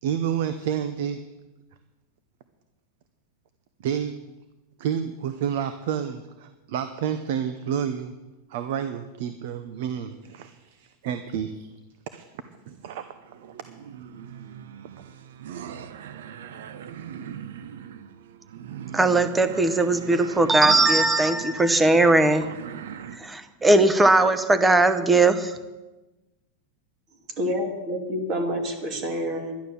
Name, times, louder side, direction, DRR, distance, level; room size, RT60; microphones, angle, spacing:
voice 1, 0.0-1.2 3.8-4.2 4.8-8.1 8.5-11.7 12.1-12.3 12.7-13.0 13.4-13.5, right 8 dB, 60° right, 10 dB, 0.9 m, -29 dB
sound 1, 12.9-23.2, right 8 dB, 80° right, 0.9 m, -39 dB
voice 2, 18.9-22.4 23.1-25.6, right 2 dB, 10° right, 10 dB, 0.8 m, -19 dB
voice 3, 27.4-29.5, equal, 30° right, 4 dB, 2.3 m, -28 dB
11.5 x 11.0 x 6.9 m, 1.1 s
supercardioid pair, 160°, 0 cm